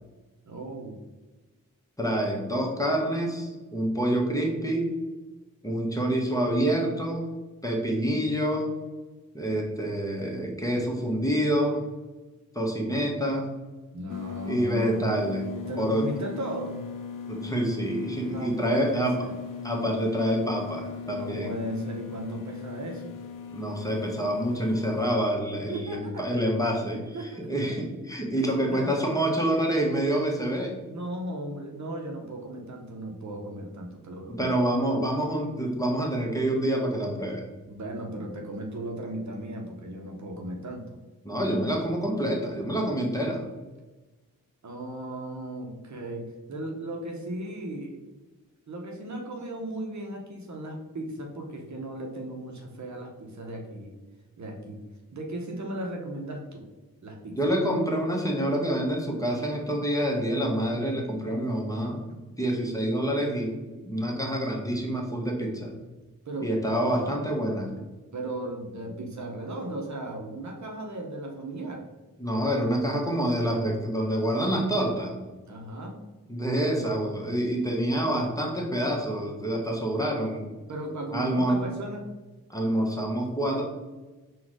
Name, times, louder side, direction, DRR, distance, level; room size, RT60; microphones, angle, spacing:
voice 1, 0.4-1.0 13.9-15.0 15.5-16.8 18.2-19.3 21.1-23.1 25.7-26.2 26.9-27.3 27.6-27.7 28.4-28.9 30.8-34.5 37.7-41.0 44.6-48.0 48.7-53.9 54.4-54.8 55.1-56.6 57.0-57.4 66.2-66.5 68.1-71.9 75.4-76.0 80.7-82.1, right 1 dB, 50° right, 1 dB, 0.9 m, -36 dB
voice 2, 2.0-4.9 5.6-7.3 7.6-8.7 9.3-11.8 12.5-13.5 14.4-15.5 15.8-16.1 17.3-19.2 19.6-21.5 23.5-30.7 34.3-37.4 41.2-43.4 57.3-62.1 62.4-63.5 63.8-65.7 66.4-67.7 72.2-75.1 76.3-80.5 81.1-81.6 82.5-83.6, right 1 dB, 10° left, -1 dB, 1.2 m, -27 dB
sound 1, 14.1-25.1, left 6 dB, 65° left, 0.6 m, -39 dB
3.9 x 2.5 x 4.7 m, 1.2 s
supercardioid pair, 45°, 36 cm